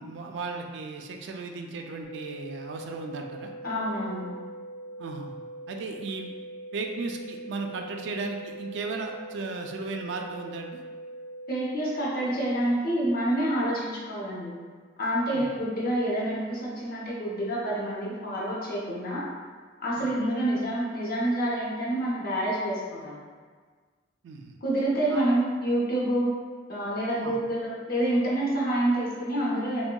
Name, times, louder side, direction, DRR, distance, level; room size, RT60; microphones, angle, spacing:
voice 1, 0.0-3.5 5.0-5.3 5.7-6.3 6.7-10.8 15.3-15.5 19.9-20.1 24.2-24.6 25.1-25.2 27.2-27.4, right 3 dB, 70° right, 3 dB, 0.3 m, -35 dB
sound 1, 2.0-12.0, right 1 dB, 85° left, 0.8 m, -42 dB
voice 2, 3.6-4.2 11.5-14.5 15.0-19.2 19.8-23.1 24.6-26.3 26.7-29.9, right 1 dB, 55° left, -5 dB, 0.7 m, -27 dB
3.6 x 2.1 x 2.2 m, 1.5 s
head